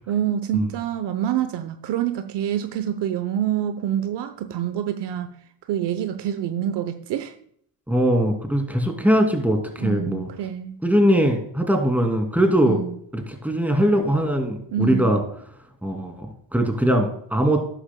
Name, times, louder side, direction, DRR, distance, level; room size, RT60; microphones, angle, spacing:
voice 1, 0.1-5.3 5.7-7.3 9.8-10.8 12.7-13.0 14.7-15.1, right 10 dB, 60° right, 0.9 m, -26 dB
voice 2, 7.9-10.3 10.8-12.8 13.1-15.2 15.8-17.7, equal, 5° right, 2.7 m, -21 dB
12.5 x 10.0 x 2.3 m
supercardioid pair, 75°, 47 cm